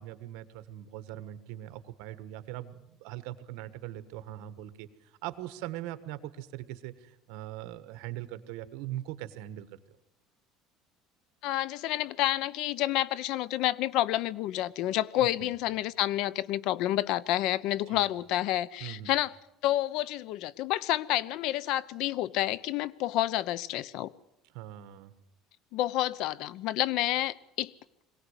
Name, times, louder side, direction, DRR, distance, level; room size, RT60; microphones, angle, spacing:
voice 1, 0.0-4.9 5.2-9.8 15.2-15.5 17.9-18.0 18.8-19.1 24.5-25.1, right 13 dB, 75° right, 12 dB, 1.4 m, -41 dB
voice 2, 11.4-19.3 19.6-24.1 25.7-27.7, left 14 dB, 60° left, 21 dB, 0.7 m, -29 dB
22.0 x 17.5 x 8.2 m, 0.86 s
cardioid pair, 145°, 0 cm